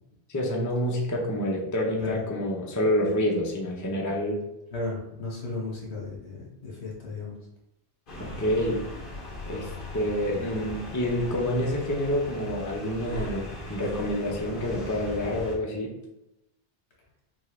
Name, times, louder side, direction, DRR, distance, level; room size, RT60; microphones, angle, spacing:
voice 1, 0.3-4.4 8.4-8.8 9.5-15.9, left 1 dB, 20° left, -1 dB, 0.6 m, -28 dB
voice 2, 4.7-7.4, left 3 dB, 70° left, -3 dB, 1.7 m, -35 dB
sound 1, 8.1-15.6, left 2 dB, 50° left, 1.3 m, -39 dB
6.0 x 2.5 x 3.2 m, 0.89 s
omnidirectional pair, 1.1 m